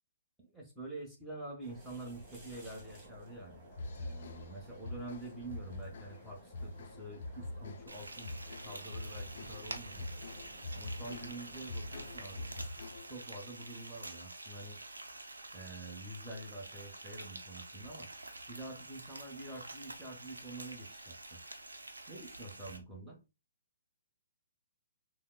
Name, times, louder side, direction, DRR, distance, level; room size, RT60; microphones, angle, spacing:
voice 1, 0.4-3.6 3.9-10.1 10.7-12.5 13.1-14.8 15.5-18.1 18.5-21.4 22.1-23.2, right 2 dB, ahead, -3 dB, 1.2 m, -47 dB
sound 1, 1.6-12.7, right 2 dB, 30° right, 1.8 m, -55 dB
sound 2, 3.7-13.3, left 2 dB, 55° left, 0.5 m, -45 dB
Frying (food), 7.9-22.8, right 2 dB, 85° right, 0.6 m, -48 dB
5.4 x 2.1 x 2.2 m, 0.28 s
figure-of-eight pair, 130°, 0 cm